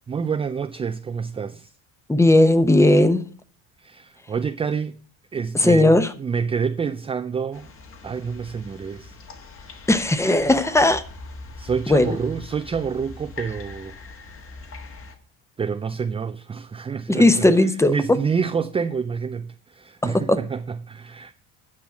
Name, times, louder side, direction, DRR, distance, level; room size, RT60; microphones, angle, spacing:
voice 1, 0.1-1.7 3.8-5.0 5.3-7.7 8.0-9.2 9.6-9.8 11.6-14.0 15.6-21.3, right 6 dB, 15° right, 0.4 m, -28 dB
voice 2, 2.1-3.2 5.6-6.1 9.9-11.0 11.9-12.2 17.1-17.9 20.0-20.4, left 1 dB, 10° left, 0.8 m, -17 dB
sound 1, 7.5-15.2, left 3 dB, 40° left, 1.6 m, -41 dB
9.6 x 5.7 x 6.2 m
cardioid pair, 110°, 34 cm